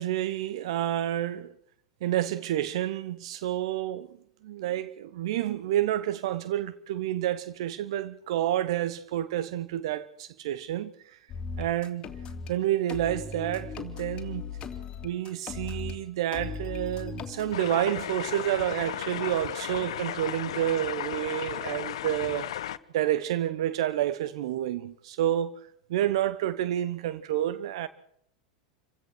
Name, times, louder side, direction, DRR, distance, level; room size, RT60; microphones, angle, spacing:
voice 1, 0.0-1.5 2.0-4.1 4.4-10.9 11.6-12.0 12.5-14.4 15.0-22.5 22.9-25.6 25.9-27.9, right 12 dB, 60° right, 1.0 m, -29 dB
sound 1, 11.3-12.5 12.9-16.0 16.3-17.5, left 5 dB, 30° left, 3.0 m, -37 dB
sound 2, 17.5-22.8, left 11 dB, 65° left, 1.0 m, -35 dB
28.0 x 16.0 x 6.3 m
figure-of-eight pair, 90°, 3 cm